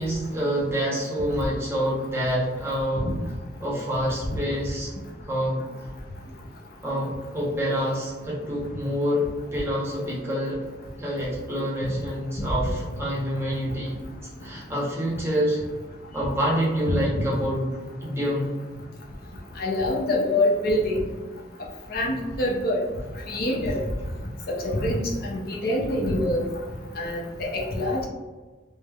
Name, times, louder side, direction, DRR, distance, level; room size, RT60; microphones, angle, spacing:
voice 1, 0.0-3.1 3.6-4.9 5.3-5.9 6.8-9.2 9.5-10.6 11.0-14.0 14.4-15.6 16.1-17.7 18.0-18.5, equal, 15° right, -6 dB, 0.7 m, -27 dB
voice 2, 19.6-21.0 21.9-22.8 23.3-23.8 24.5-26.5 27.0-28.1, left 1 dB, 55° left, -2 dB, 0.5 m, -25 dB
3.2 x 2.0 x 2.2 m, 1.3 s
head